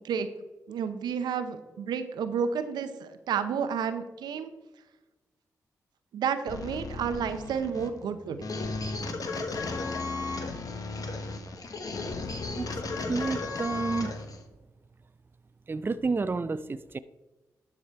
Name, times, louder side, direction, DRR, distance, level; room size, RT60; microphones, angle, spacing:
voice 1, 0.7-4.5 6.1-8.4, right 7 dB, 85° right, 10 dB, 0.7 m, -31 dB
sound 1, 6.5-14.4, left 3 dB, 60° left, 1.2 m, -35 dB
voice 2, 13.1-14.1 15.7-17.0, right 4 dB, 30° right, 13 dB, 0.4 m, -30 dB
12.0 x 4.9 x 4.5 m, 1.1 s
supercardioid pair, 45°, 7 cm